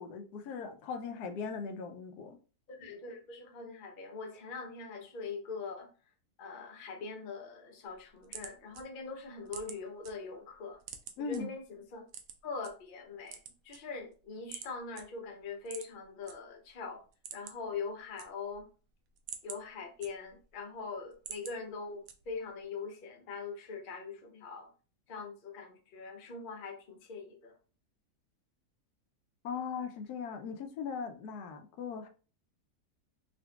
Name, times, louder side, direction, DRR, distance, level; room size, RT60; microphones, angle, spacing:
voice 1, 0.0-2.4 11.2-11.6 29.4-32.1, left 6 dB, 90° left, 1.1 m, -39 dB
voice 2, 2.7-5.9 6.4-10.8 11.2-11.6 11.9-12.0 12.4-13.4 13.6-17.0 17.3-18.7 19.4-24.7 25.1-27.5, left 4 dB, 50° left, 0.6 m, -42 dB
sound 1, 7.9-10.1 10.5-11.4 12.1-12.7 13.2-14.1 14.5-14.7 15.0-15.1 15.6-16.3 16.7-16.8 17.1-17.7 18.0-18.7 19.1-20.5 20.9-21.6 22.1-22.5, right 8 dB, 75° right, 1.0 m, -46 dB
3.8 x 2.5 x 2.2 m
omnidirectional pair, 1.6 m